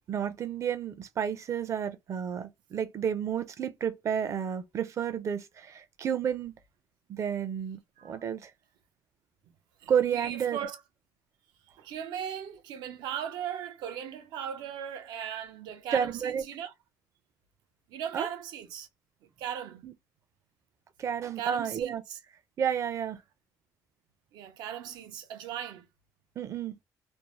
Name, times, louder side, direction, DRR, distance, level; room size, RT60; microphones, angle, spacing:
voice 1, 0.1-6.5 7.1-8.5 9.9-10.6 15.9-16.4 18.1-18.3 19.8-19.9 21.0-22.0 22.6-23.2 26.4-26.7, right 8 dB, 45° right, 0.4 m, -31 dB
voice 2, 9.8-10.8 11.8-16.7 17.9-18.9 19.4-19.8 21.4-22.2 24.3-25.9, right 9 dB, 90° right, 0.6 m, -38 dB
2.6 x 2.0 x 3.0 m
cardioid pair, 125°, 7 cm